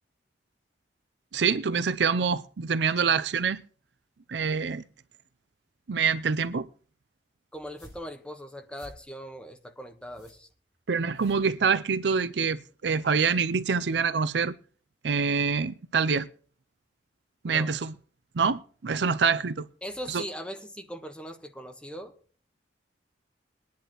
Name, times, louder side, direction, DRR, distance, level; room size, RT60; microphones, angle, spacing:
voice 1, 1.3-3.6 4.3-4.8 5.9-6.7 10.9-14.5 15.0-16.3 17.4-17.9 18.3-19.7 20.1-20.2, right 5 dB, 70° right, 0.5 m, -26 dB
voice 2, 7.5-10.5 17.5-17.7 19.8-22.1, equal, 5° left, 1.3 m, -40 dB
sound 1, 7.6-12.1, left 1 dB, 20° left, 7.9 m, -55 dB
21.5 x 10.5 x 3.1 m
head